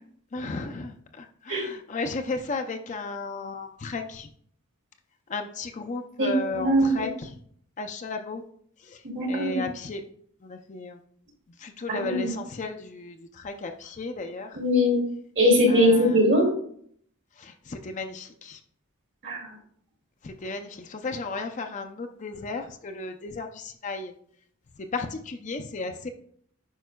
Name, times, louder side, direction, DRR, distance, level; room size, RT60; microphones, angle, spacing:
voice 1, 0.3-4.3 5.3-7.3 7.8-8.4 8.9-9.0 9.3-10.0 10.4-11.0 11.6-14.6 15.7-16.2 17.4-18.6 20.2-24.1 24.9-26.1, left 3 dB, 35° left, 5 dB, 0.5 m, -34 dB
voice 2, 6.2-7.1 9.1-9.6 11.9-12.3 14.5-15.0 15.4-16.5 19.2-19.4, equal, 55° right, 0 dB, 2.2 m, -21 dB
9.2 x 5.3 x 2.3 m, 0.62 s
head